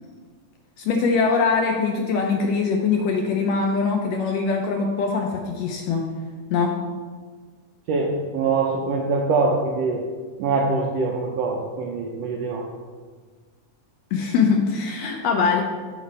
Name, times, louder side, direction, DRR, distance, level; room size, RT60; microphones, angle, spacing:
voice 1, 0.8-6.1 6.5-6.7 14.1-15.6, left 5 dB, 80° left, 2 dB, 1.6 m, -22 dB
voice 2, 7.9-10.1 10.4-12.6, right 4 dB, 85° right, 0 dB, 1.5 m, -23 dB
8.0 x 5.2 x 4.2 m, 1.5 s
omnidirectional pair, 3.5 m